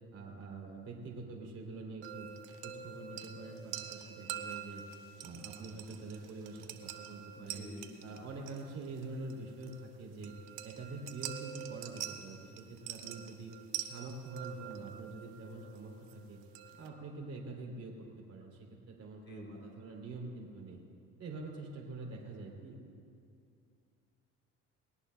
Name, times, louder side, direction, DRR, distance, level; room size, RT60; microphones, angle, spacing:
voice 1, 0.1-2.3 2.6-4.8 5.2-7.6 8.0-10.3 10.6-13.5 13.8-16.4 16.8-17.9 18.3-20.8 21.2-22.8, right 3 dB, 45° right, -1 dB, 3.3 m, -45 dB
sound 1, 2.0-16.9, right 10 dB, 90° right, 0.9 m, -46 dB
voice 2, 7.3-8.1 19.2-19.6, left 1 dB, 30° left, 0 dB, 3.2 m, -49 dB
20.5 x 17.5 x 2.3 m, 2.4 s
supercardioid pair, 75°, 34 cm